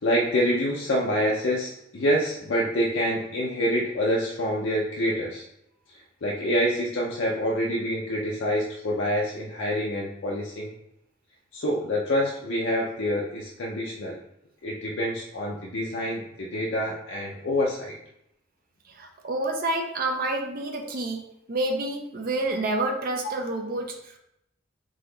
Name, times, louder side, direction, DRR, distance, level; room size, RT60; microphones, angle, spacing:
voice 1, 0.0-5.4 5.9-10.7 11.5-14.2 14.6-18.0, equal, 75° left, -3 dB, 0.6 m, -26 dB
voice 2, 18.9-21.2 21.5-24.2, right 2 dB, 50° right, 2 dB, 0.5 m, -28 dB
4.1 x 2.8 x 3.8 m, 0.81 s
head